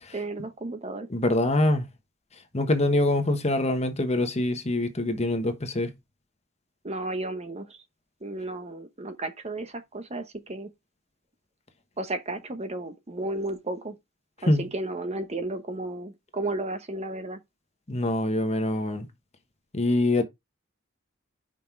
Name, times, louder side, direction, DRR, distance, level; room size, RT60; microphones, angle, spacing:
voice 1, 0.1-1.1 6.8-7.8 8.2-10.7 12.0-14.0 14.4-17.4, right 2 dB, 30° right, 1.1 m, -33 dB
voice 2, 1.1-1.8 2.5-5.9 14.5-14.6 17.9-19.1 19.7-20.2, left 1 dB, 30° left, 1.2 m, -24 dB
5.9 x 5.3 x 4.6 m
head